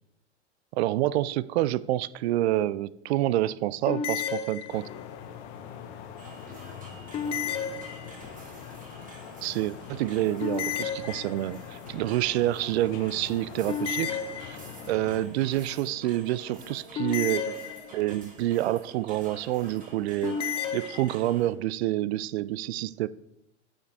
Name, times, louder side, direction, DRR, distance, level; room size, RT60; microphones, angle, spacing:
voice 1, 0.7-4.9 9.4-14.6 14.9-17.6 17.9-20.4 20.7-23.1, right 15 dB, 60° right, 0.5 m, -28 dB
sound 1, 3.9-5.2 7.1-8.4 10.4-11.7 13.7-15.0 16.9-18.2 20.2-21.1, left 7 dB, 15° left, 0.3 m, -32 dB
sound 2, 4.7-15.3, left 8 dB, 45° left, 1.0 m, -44 dB
sound 3, 6.2-21.5, right 2 dB, 20° right, 2.0 m, -49 dB
8.8 x 4.9 x 4.8 m
hypercardioid pair, 115°, 37 cm